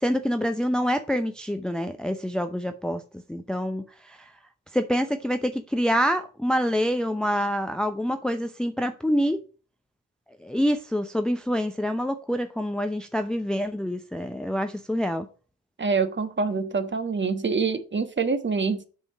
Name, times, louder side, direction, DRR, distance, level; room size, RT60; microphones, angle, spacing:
voice 1, 0.0-3.0 3.3-4.2 4.7-9.4 10.4-15.3, equal, ahead, 0.7 m, -26 dB
voice 2, 15.8-18.9, right 4 dB, 30° right, 1.3 m, -26 dB
6.9 x 5.4 x 5.0 m
hypercardioid pair, 50°, 40 cm